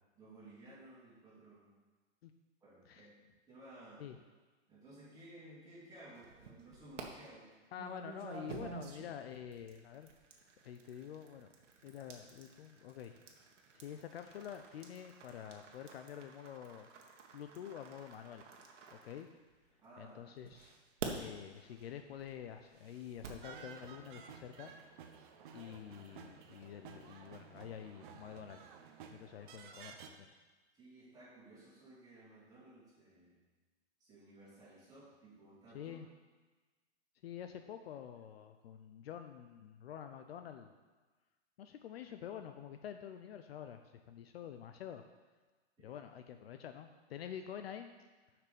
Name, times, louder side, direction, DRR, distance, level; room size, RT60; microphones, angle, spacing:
voice 1, 0.2-1.7 2.6-3.1 3.5-4.1 4.7-7.5 19.8-20.2 30.7-33.4 34.0-36.0 45.8-46.0, right 1 dB, 10° right, -9 dB, 2.8 m, -56 dB
sound 1, 6.1-7.0 7.8-19.8 20.4-23.5, right 6 dB, 80° right, 1.5 m, -50 dB
voice 2, 7.7-10.1 10.6-11.5 11.8-13.2 13.7-16.9 17.3-18.4 18.9-19.3 20.0-20.7 21.1-24.7 25.5-28.7 29.1-30.3 35.7-36.1 37.2-40.7 41.6-45.0 45.8-47.9, left 9 dB, 55° left, 7 dB, 0.6 m, -48 dB
sound 2, 23.4-30.1, right 6 dB, 45° right, 0.8 m, -54 dB
6.6 x 6.0 x 6.8 m, 1.3 s
hypercardioid pair, 165°, 36 cm